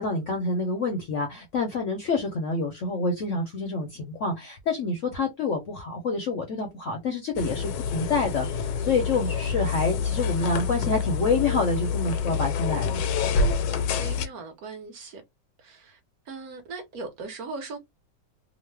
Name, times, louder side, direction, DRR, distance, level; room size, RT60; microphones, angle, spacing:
voice 1, 0.0-13.0, left 3 dB, 65° left, 0.8 m, -27 dB
sound 1, 7.4-14.3, left 5 dB, 80° left, 1.2 m, -27 dB
voice 2, 14.0-15.2 15.6-16.0 16.3-17.8, right 3 dB, 60° right, 1.2 m, -39 dB
3.0 x 2.0 x 3.2 m
omnidirectional pair, 1.9 m